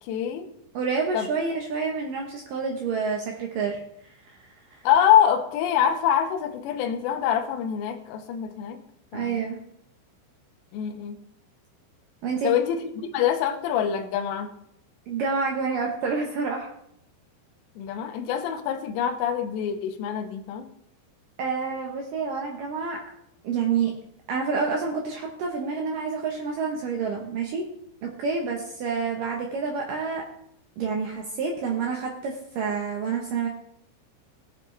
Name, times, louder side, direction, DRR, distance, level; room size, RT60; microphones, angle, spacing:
voice 1, 0.0-0.5 1.1-1.3 4.8-8.8 9.1-9.4 10.7-11.2 12.4-14.5 17.8-20.7, left 9 dB, 75° left, 5 dB, 3.0 m, -25 dB
voice 2, 0.7-4.8 9.1-9.6 12.2-12.6 15.1-16.7 21.4-23.0 23.4-23.9 24.3-27.6 28.0-30.2 30.8-33.5, right 5 dB, 80° right, 1 dB, 1.9 m, -28 dB
18.0 x 8.3 x 3.3 m, 0.74 s
omnidirectional pair, 5.6 m